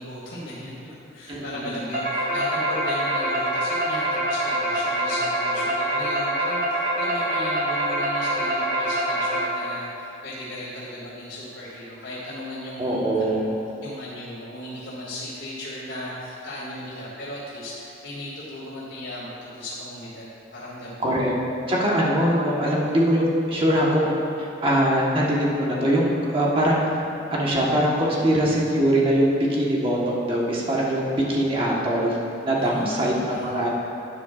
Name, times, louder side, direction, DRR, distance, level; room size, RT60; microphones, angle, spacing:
voice 1, 0.0-21.1 32.6-33.7, left 1 dB, 85° left, -12 dB, 2.2 m, -36 dB
voice 2, 1.3-1.8 12.8-13.4 21.0-21.4 21.7-26.9 27.3-32.2 32.4-33.7, equal, 30° right, -4 dB, 1.3 m, -22 dB
sound 1, 1.9-9.8, right 1 dB, 45° right, 1.7 m, -25 dB
11.5 x 9.2 x 2.5 m, 2.6 s
head